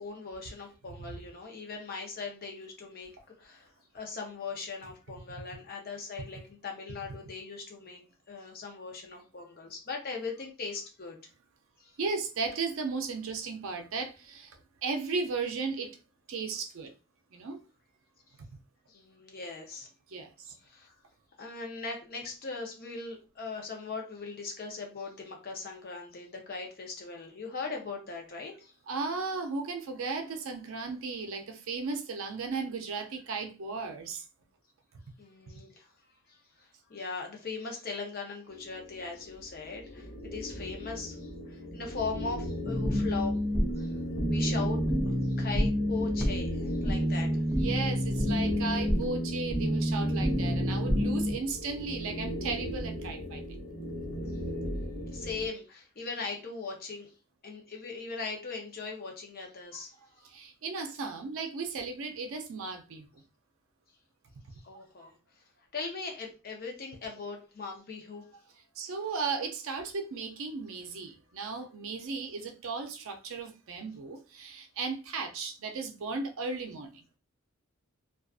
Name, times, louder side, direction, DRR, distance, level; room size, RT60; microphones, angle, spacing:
voice 1, 0.0-3.1 3.4-8.0 8.3-11.2 11.8-12.0 18.9-19.9 20.4-20.9 21.4-28.7 35.2-35.9 36.3-43.4 43.8-43.9 44.3-47.4 54.8-57.1 57.4-59.9 64.5-65.1 65.7-68.3, left 4 dB, 40° left, 0.6 m, -40 dB
voice 2, 0.9-1.2 12.0-16.0 16.3-16.9 17.3-17.6 20.1-20.6 28.9-34.2 47.6-53.4 59.7-59.8 60.2-63.2 65.0-65.1 68.8-77.0, right 4 dB, 65° right, 0.4 m, -35 dB
sound 1, 38.5-55.5, left 1 dB, 65° left, 1.1 m, -38 dB
sound 2, 42.6-51.3, equal, 5° right, 0.4 m, -29 dB
2.5 x 2.3 x 2.3 m
head